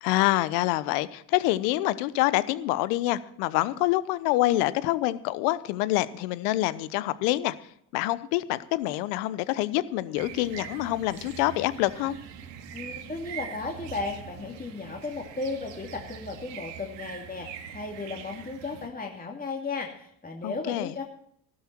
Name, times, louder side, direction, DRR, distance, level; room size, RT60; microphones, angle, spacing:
voice 1, 0.0-7.5 7.9-12.2 20.4-20.9, left 16 dB, 80° left, 16 dB, 0.9 m, -26 dB
sound 1, 10.2-18.9, right 8 dB, 70° right, 2.1 m, -43 dB
voice 2, 12.7-21.0, left 3 dB, 20° left, 1 dB, 2.5 m, -35 dB
15.0 x 12.5 x 4.5 m, 0.69 s
hypercardioid pair, 65°, 45 cm